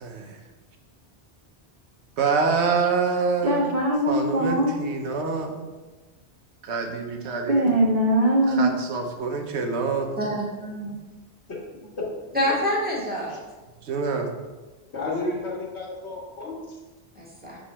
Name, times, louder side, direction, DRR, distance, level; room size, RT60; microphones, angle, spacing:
voice 1, 0.0-0.4 2.2-3.6 4.1-5.7 6.6-7.7 8.5-10.1 13.8-14.3, right 4 dB, 90° right, 4 dB, 1.1 m, -26 dB
voice 2, 3.4-4.7 7.5-8.7, right 1 dB, 40° right, -3 dB, 0.8 m, -21 dB
voice 3, 10.2-11.0 12.3-13.4 17.1-17.6, equal, 10° right, -5 dB, 1.5 m, -27 dB
voice 4, 14.9-16.8, left 2 dB, 80° left, -4 dB, 1.7 m, -32 dB
6.1 x 3.7 x 4.3 m, 1.2 s
omnidirectional pair, 1.1 m